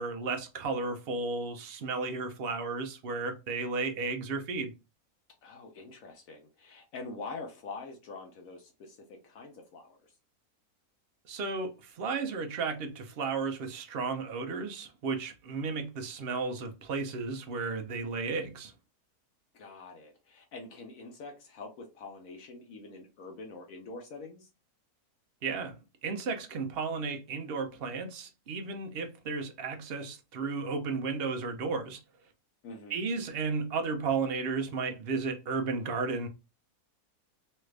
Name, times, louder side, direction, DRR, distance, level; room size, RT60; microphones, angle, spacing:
voice 1, 0.0-4.7 11.3-18.7 25.4-32.0 32.9-36.3, right 4 dB, 55° right, 0.6 m, -34 dB
voice 2, 5.4-10.1 19.5-24.5 32.6-33.0, left 3 dB, 70° left, 1.0 m, -45 dB
3.2 x 2.5 x 3.2 m
omnidirectional pair, 1.6 m